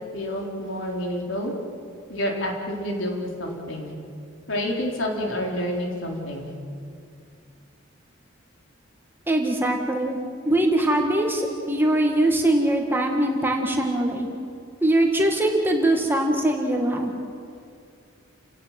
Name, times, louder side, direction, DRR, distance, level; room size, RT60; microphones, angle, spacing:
voice 1, 0.1-1.5 2.1-3.9 4.5-6.5, left 1 dB, 75° left, 0 dB, 4.1 m, -28 dB
voice 2, 9.3-10.2 10.4-14.3 14.8-17.1, right 1 dB, 10° right, 1 dB, 1.7 m, -22 dB
29.0 x 17.5 x 7.6 m, 2.3 s
head